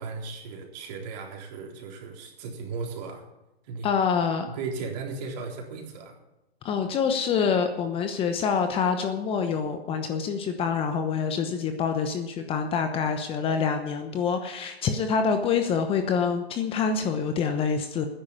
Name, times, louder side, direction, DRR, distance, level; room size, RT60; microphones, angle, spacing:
voice 1, 0.0-3.2 3.6-3.9 4.4-6.2, right 4 dB, 45° right, 1 dB, 3.8 m, -36 dB
voice 2, 3.8-4.5 6.6-18.1, left 6 dB, 20° left, 6 dB, 0.9 m, -26 dB
13.5 x 10.0 x 7.3 m, 0.95 s
hypercardioid pair, 135°, 31 cm